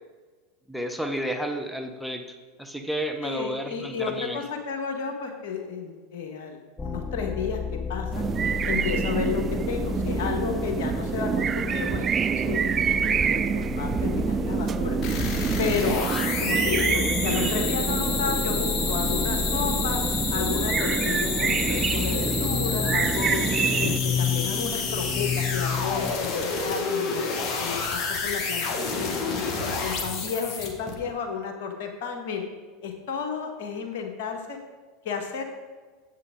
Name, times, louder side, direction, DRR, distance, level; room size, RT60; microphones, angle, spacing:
voice 1, 0.7-2.2 2.6-4.4 16.1-16.3 16.5-16.8, right 1 dB, ahead, 5 dB, 1.0 m, -31 dB
voice 2, 3.2-7.6 7.9-8.2 8.6-12.7 13.0-15.0 15.6-16.0 16.4-20.0 20.3-23.4 23.8-27.3 27.6-32.4 32.8-34.6 35.0-35.4, left 6 dB, 60° left, 3 dB, 1.6 m, -32 dB
sound 1, 6.8-26.1, left 5 dB, 15° left, 0.7 m, -32 dB
sound 2, 8.1-24.0, right 7 dB, 30° right, 0.3 m, -27 dB
sound 3, 15.0-30.9, left 4 dB, 40° left, 1.7 m, -29 dB
9.5 x 8.0 x 3.8 m, 1.4 s
hypercardioid pair, 85°, 0 cm